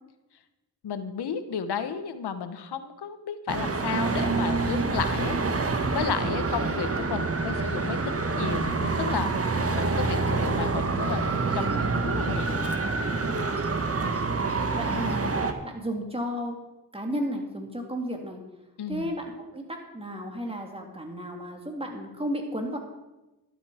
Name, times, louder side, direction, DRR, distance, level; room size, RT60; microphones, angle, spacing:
voice 1, 0.8-5.4 5.9-12.7 14.9-15.1 18.8-19.1, left 7 dB, 90° left, 10 dB, 1.2 m, -33 dB
Traffic noise roadway noise, 3.5-15.5, right 3 dB, 35° right, 1.5 m, -27 dB
voice 2, 14.3-15.3 15.6-16.6 16.9-18.4 18.9-22.8, equal, 15° right, 2 dB, 3.2 m, -33 dB
12.5 x 12.0 x 5.1 m, 1.0 s
cardioid pair, 70°, 39 cm